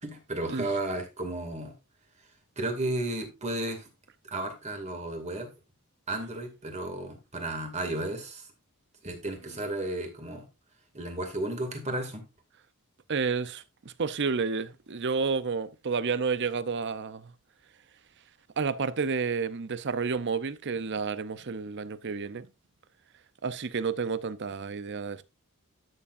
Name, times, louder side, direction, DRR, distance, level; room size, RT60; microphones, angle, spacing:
voice 1, 0.0-1.7 2.6-3.9 4.3-5.5 6.1-8.5 9.0-10.5 10.9-12.2, right 2 dB, 30° right, 2.4 m, -33 dB
voice 2, 13.1-17.3 18.6-22.5 23.4-25.2, right 5 dB, 55° right, 0.7 m, -30 dB
12.0 x 7.0 x 2.6 m
head